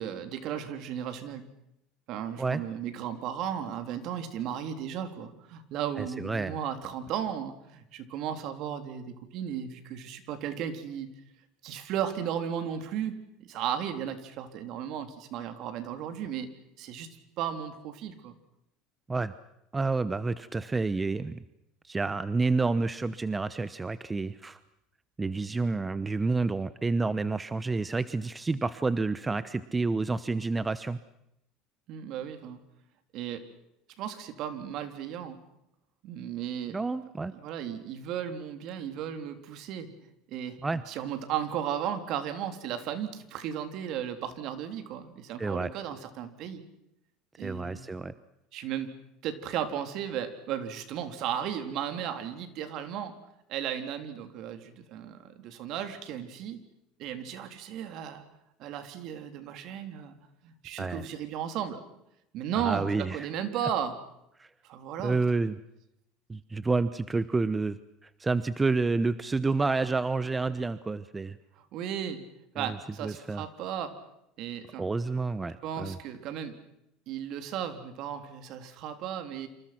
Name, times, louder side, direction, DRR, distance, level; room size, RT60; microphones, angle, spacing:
voice 1, 0.0-1.5 2.1-11.1 11.6-16.5 16.8-17.1 17.4-18.4 31.9-32.6 33.1-33.4 34.0-35.4 36.0-36.8 37.3-39.9 40.3-40.6 40.9-46.6 47.4-47.9 48.5-48.9 49.2-53.2 53.5-56.6 57.0-58.2 58.6-60.2 60.4-61.8 62.3-64.0 64.6-65.2 71.6-72.2 72.6-73.9 74.4-74.8 75.6-76.5 77.1-79.5, right 9 dB, 60° right, 8 dB, 3.6 m, -35 dB
voice 2, 6.0-6.6 19.1-19.3 19.7-21.4 21.8-24.6 25.2-31.0 36.7-37.3 40.6-40.8 45.4-45.7 47.4-48.1 60.8-61.0 62.6-63.3 64.4-64.5 65.0-65.6 66.3-71.4 72.6-72.8 73.0-73.5 74.8-76.0, right 3 dB, 15° right, 14 dB, 0.9 m, -29 dB
28.0 x 27.0 x 6.1 m, 0.82 s
supercardioid pair, 115°, 0 cm